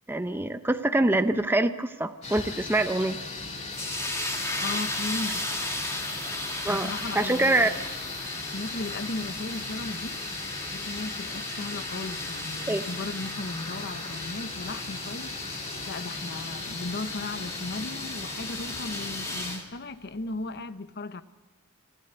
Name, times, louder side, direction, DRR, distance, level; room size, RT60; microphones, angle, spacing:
voice 1, 0.1-3.2 6.6-7.7 12.7-12.8, right 2 dB, 10° right, 0.6 m, -25 dB
sound 1, 2.2-19.6, left 3 dB, 30° left, 2.2 m, -38 dB
sound 2, 3.7-19.6, left 1 dB, 15° left, 2.6 m, -36 dB
voice 2, 4.6-5.5 6.7-7.8 8.5-10.2 10.7-21.2, left 2 dB, 50° left, 1.0 m, -36 dB
26.5 x 13.0 x 8.0 m
head